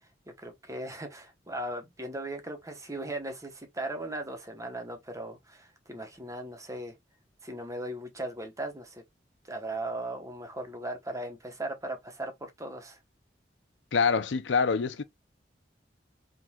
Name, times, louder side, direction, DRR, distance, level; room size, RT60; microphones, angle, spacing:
voice 1, 0.4-7.0 7.4-9.0 9.5-13.0, right 1 dB, 20° right, 1.0 m, -38 dB
voice 2, 13.9-15.0, left 5 dB, 90° left, 0.5 m, -25 dB
4.4 x 3.8 x 2.3 m
head